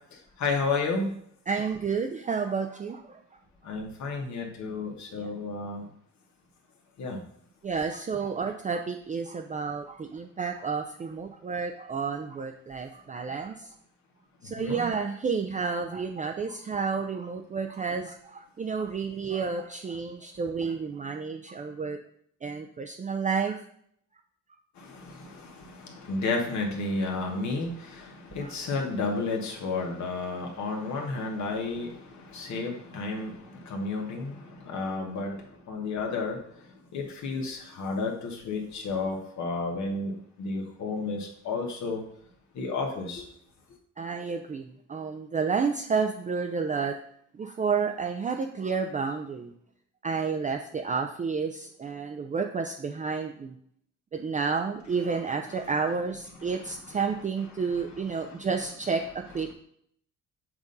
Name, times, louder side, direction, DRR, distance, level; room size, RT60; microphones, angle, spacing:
voice 1, 0.4-1.1 3.6-5.9 7.0-7.2 14.6-14.8 24.8-35.3 35.7-36.4 36.9-40.1 40.4-42.0 42.5-43.2 56.4-57.0 57.5-57.8 58.1-58.4 59.5-59.6, left 3 dB, 70° left, 1 dB, 1.3 m, -32 dB
voice 2, 1.5-3.2 5.1-5.3 7.6-13.7 14.4-22.0 22.4-23.6 28.4-28.5 44.0-44.6 44.9-47.0 47.4-49.5 50.0-53.5 54.1-59.5, right 5 dB, 25° right, 4 dB, 0.4 m, -30 dB
7.2 x 2.6 x 5.3 m, 0.67 s
cardioid pair, 90°, 30 cm